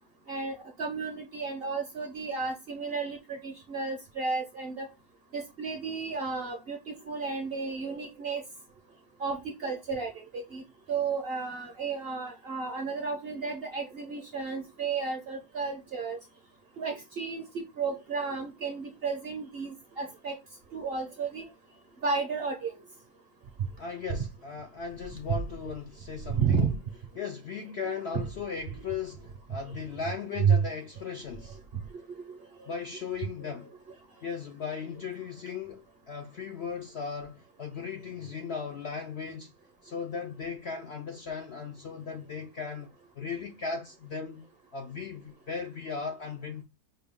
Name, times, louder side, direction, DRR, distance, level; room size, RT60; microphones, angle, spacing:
voice 1, 0.3-4.9 5.3-8.4 9.2-10.6 10.9-16.2 16.8-20.4 20.7-21.4 22.0-22.7 26.3-26.7 27.9-28.0 30.4-30.6 32.3-32.7 33.4-33.5, right 5 dB, 50° right, 0.8 m, -32 dB
voice 2, 23.8-26.7 27.2-31.6 32.7-33.7 34.2-39.5 39.8-44.4 44.7-46.6, left 5 dB, 60° left, 0.7 m, -37 dB
5.8 x 2.3 x 3.5 m
omnidirectional pair, 1.7 m